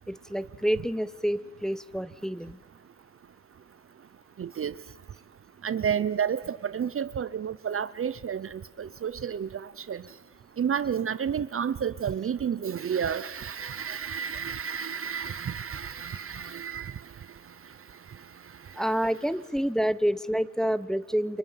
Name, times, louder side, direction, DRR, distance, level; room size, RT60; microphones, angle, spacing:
voice 1, 0.1-2.6 18.8-21.4, equal, ahead, 0.9 m, -28 dB
voice 2, 4.4-4.7 5.6-10.0 10.6-17.0, right 8 dB, 40° right, 0.7 m, -31 dB
29.5 x 25.0 x 5.8 m
cardioid pair, 70°, 34 cm